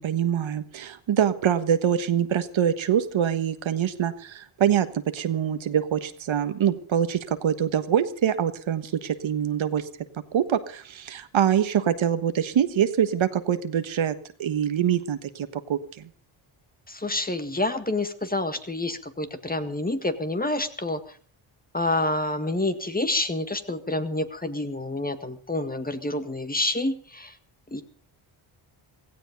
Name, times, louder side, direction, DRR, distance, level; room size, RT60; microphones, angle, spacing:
voice 1, 0.0-9.9 10.3-16.1, right 9 dB, 70° right, 10 dB, 1.5 m, -24 dB
voice 2, 16.9-21.2 21.7-27.4 27.7-27.8, left 2 dB, 15° left, 9 dB, 1.8 m, -28 dB
16.5 x 15.5 x 5.3 m, 0.43 s
cardioid pair, 75°, 49 cm